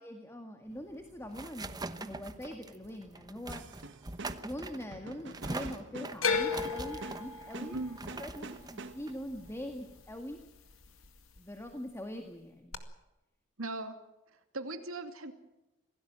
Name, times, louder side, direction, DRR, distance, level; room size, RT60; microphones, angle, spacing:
voice 1, 0.0-3.6 4.4-7.8 8.2-10.4 11.4-12.8, equal, 15° left, 5 dB, 1.8 m, -43 dB
sound 1, 0.7-10.0, right 2 dB, 20° right, 1.1 m, -44 dB
sound 2, 3.5-9.3, right 3 dB, 60° right, 1.6 m, -47 dB
sound 3, 6.2-10.4 10.7-11.4 12.7-12.8, left 5 dB, 80° left, 2.2 m, -35 dB
voice 2, 7.6-8.0 13.6-13.9 14.5-15.3, right 2 dB, 80° right, 7 dB, 2.6 m, -38 dB
26.5 x 17.5 x 7.5 m, 0.97 s
head